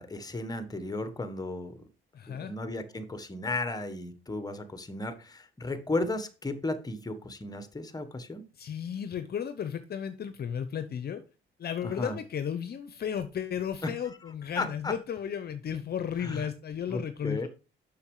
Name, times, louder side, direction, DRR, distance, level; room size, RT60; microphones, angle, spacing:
voice 1, 0.0-1.9 2.3-8.4 11.8-12.2 13.8-13.9 14.5-14.9 16.2-16.5 16.9-17.5, left 2 dB, 20° left, 10 dB, 1.4 m, -34 dB
voice 2, 2.1-2.5 8.5-11.2 11.6-17.5, left 8 dB, 55° left, 11 dB, 0.8 m, -34 dB
7.0 x 6.3 x 4.8 m, 0.33 s
cardioid pair, 90°, 20 cm